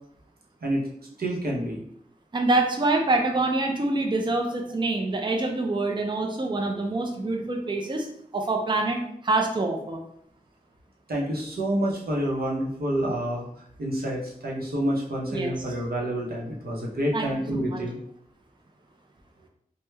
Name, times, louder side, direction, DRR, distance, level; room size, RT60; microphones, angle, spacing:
voice 1, 1.2-1.8 11.1-13.5 13.8-18.0, right 1 dB, 85° right, -3 dB, 0.7 m, -28 dB
voice 2, 2.3-8.1 8.3-10.0 15.3-15.5 17.1-17.3 17.7-17.8, right 2 dB, 30° right, 2 dB, 0.5 m, -25 dB
3.2 x 2.1 x 3.2 m, 0.70 s
wide cardioid pair, 50°, 15 cm